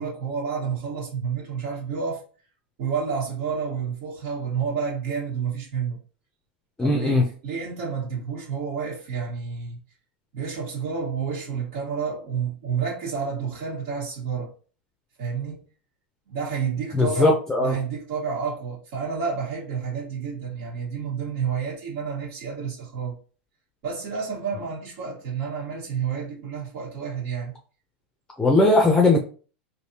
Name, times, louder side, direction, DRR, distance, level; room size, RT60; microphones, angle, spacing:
voice 1, 0.0-2.2 2.8-6.0 6.8-9.8 10.3-14.5 15.2-15.6 16.3-23.2 23.8-27.5, right 6 dB, 65° right, 1.5 m, -30 dB
voice 2, 6.8-7.2 16.9-17.7 28.4-29.2, left 2 dB, 10° left, 0.6 m, -19 dB
3.3 x 2.7 x 2.8 m
hypercardioid pair, 110°, 6 cm